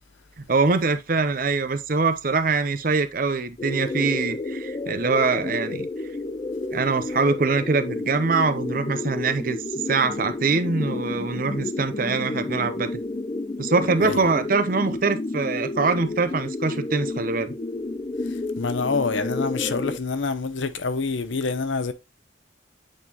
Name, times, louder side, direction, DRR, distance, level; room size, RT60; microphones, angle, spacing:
voice 1, 0.4-5.9 6.7-9.6 9.9-12.9 13.6-17.5, right 4 dB, 45° right, 0.6 m, -23 dB
sound 1, 3.6-20.0, left 2 dB, 25° left, 0.3 m, -31 dB
voice 2, 18.2-21.9, left 4 dB, 80° left, 0.8 m, -27 dB
8.4 x 3.9 x 2.9 m
head